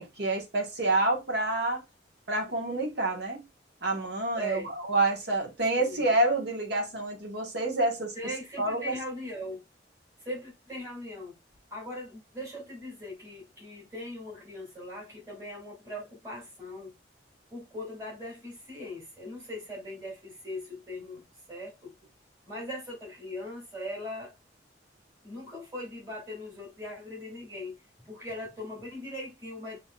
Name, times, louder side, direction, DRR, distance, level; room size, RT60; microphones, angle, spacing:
voice 1, 0.0-1.8 2.3-3.4 3.8-4.6 4.9-8.1 8.6-9.0, right 2 dB, 60° right, 1.6 m, -28 dB
voice 2, 4.3-4.7 5.7-6.0 8.1-9.6 10.2-11.4 11.7-16.9 17.5-21.2 21.5-21.9 22.5-24.3 25.2-29.8, left 1 dB, 15° right, 2.6 m, -40 dB
5.9 x 3.1 x 2.4 m
head